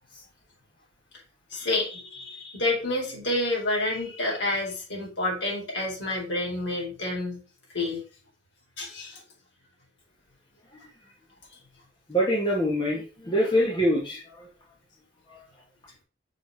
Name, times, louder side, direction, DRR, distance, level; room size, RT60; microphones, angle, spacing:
voice 1, 1.5-7.4 7.7-8.0 8.8-9.2, left 2 dB, 70° left, -3 dB, 4.6 m, -29 dB
voice 2, 12.1-14.5 15.3-15.4, equal, 25° left, -4 dB, 1.7 m, -25 dB
6.4 x 4.5 x 5.1 m, 0.34 s
head